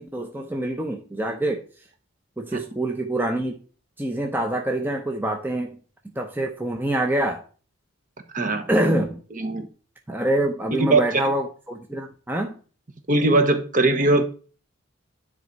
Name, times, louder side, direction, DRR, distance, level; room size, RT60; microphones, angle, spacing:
voice 1, 0.0-1.6 2.4-3.6 4.0-5.8 6.2-7.4 8.7-9.2 10.1-12.5, right 1 dB, 10° right, 0.7 m, -25 dB
voice 2, 8.3-8.7 9.4-9.7 10.8-11.2 13.1-14.2, right 2 dB, 40° right, 1.2 m, -20 dB
10.0 x 4.1 x 4.6 m
head